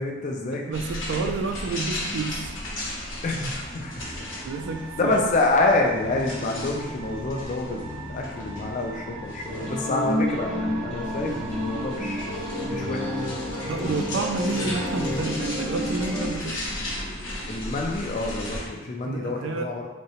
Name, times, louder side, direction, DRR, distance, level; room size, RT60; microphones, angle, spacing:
voice 1, 0.0-0.7 3.2-3.9 5.0-12.3 12.7-13.3 17.5-19.9, left 2 dB, 40° left, 0 dB, 0.4 m, -27 dB
voice 2, 0.5-2.5 4.4-5.2 13.7-16.6 19.0-19.7, right 4 dB, 70° right, 5 dB, 0.3 m, -30 dB
sound 1, 0.7-18.7, left 1 dB, 90° left, 0.8 m, -36 dB
sound 2, 3.9-15.3, right 1 dB, 35° right, 0.8 m, -40 dB
sound 3, 9.5-16.3, left 1 dB, 5° left, 0.7 m, -30 dB
3.7 x 2.1 x 2.8 m, 1.1 s
head